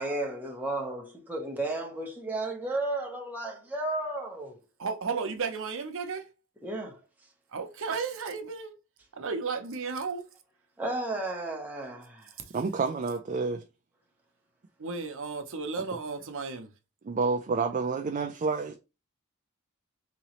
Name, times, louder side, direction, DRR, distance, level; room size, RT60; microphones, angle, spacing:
voice 1, 0.0-4.6 6.6-7.0 10.8-12.3, right 2 dB, 10° right, 0.9 m, -33 dB
voice 2, 4.8-6.3 7.5-8.8 9.1-10.3 14.8-16.7, right 5 dB, 65° right, 0.7 m, -34 dB
voice 3, 12.5-13.6 17.0-18.8, right 4 dB, 35° right, 0.4 m, -29 dB
3.8 x 3.0 x 3.0 m
head